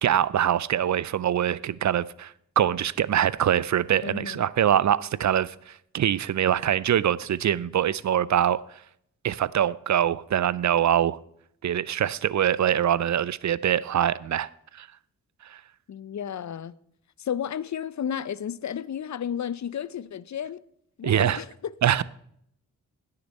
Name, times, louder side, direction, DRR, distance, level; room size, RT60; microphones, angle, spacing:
voice 1, 0.0-8.6 9.2-11.2 11.6-14.9 15.4-15.6 21.0-21.4 21.8-22.0, right 10 dB, 55° right, 0.5 m, -24 dB
voice 2, 4.0-4.5 15.9-16.8 17.2-20.6 21.0-21.7, left 9 dB, 55° left, 0.5 m, -32 dB
16.5 x 6.7 x 4.2 m
cardioid pair, 55°, 34 cm